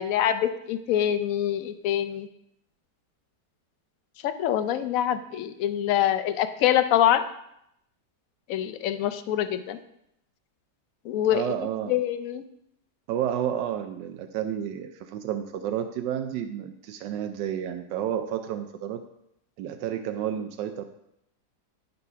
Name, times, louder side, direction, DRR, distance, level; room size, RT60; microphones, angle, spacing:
voice 1, 0.0-2.3 4.2-7.2 8.5-9.8 11.1-11.5 11.9-12.4, left 11 dB, 70° left, 10 dB, 0.8 m, -25 dB
voice 2, 11.3-12.0 13.1-19.0 19.6-20.8, right 10 dB, 85° right, 7 dB, 1.3 m, -31 dB
9.9 x 4.1 x 5.5 m, 0.77 s
omnidirectional pair, 1.9 m